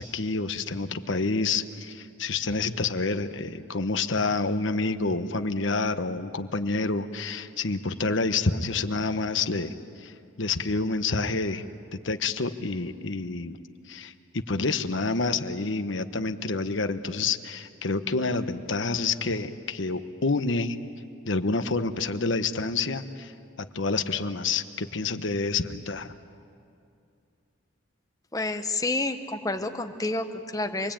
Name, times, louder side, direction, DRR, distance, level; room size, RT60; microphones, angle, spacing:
voice 1, 0.0-11.6 12.0-13.6 13.9-20.8 21.2-23.3 23.7-26.1, left 3 dB, 65° left, 9 dB, 1.1 m, -28 dB
voice 2, 28.3-30.9, left 2 dB, 15° left, 6 dB, 1.1 m, -29 dB
27.0 x 22.0 x 8.9 m, 2.5 s
head